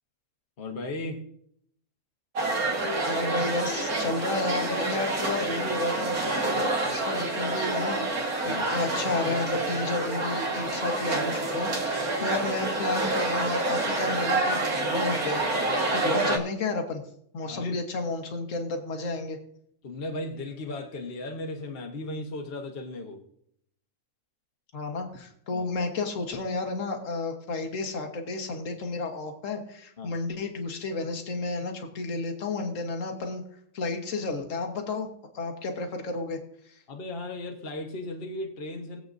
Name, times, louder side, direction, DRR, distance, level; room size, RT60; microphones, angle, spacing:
voice 1, 0.6-1.3 8.5-8.7 12.2-12.3 17.5-17.8 19.8-23.2 25.5-25.7 30.0-30.1 36.9-39.0, left 2 dB, 45° left, 2 dB, 1.4 m, -36 dB
sound 1, 2.3-16.4, right 2 dB, 85° right, 2.0 m, -28 dB
voice 2, 3.1-17.0 17.3-19.4 24.7-33.4 33.7-35.1 35.3-36.4, left 3 dB, 60° left, 4 dB, 1.7 m, -32 dB
20.0 x 7.9 x 2.6 m, 0.70 s
omnidirectional pair, 1.5 m